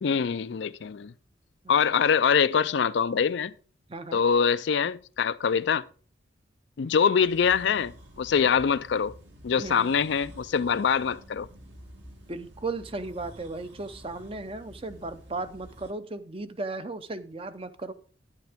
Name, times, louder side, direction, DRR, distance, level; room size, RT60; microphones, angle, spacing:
voice 1, 0.0-1.1 1.7-3.5 4.1-5.8 6.8-9.1 9.4-11.5, left 6 dB, 65° left, 0.4 m, -24 dB
voice 2, 3.9-4.2 9.6-9.9 12.3-17.9, right 3 dB, 30° right, 0.7 m, -36 dB
sound 1, 7.0-15.9, equal, 70° right, 2.3 m, -50 dB
10.5 x 9.5 x 3.5 m
head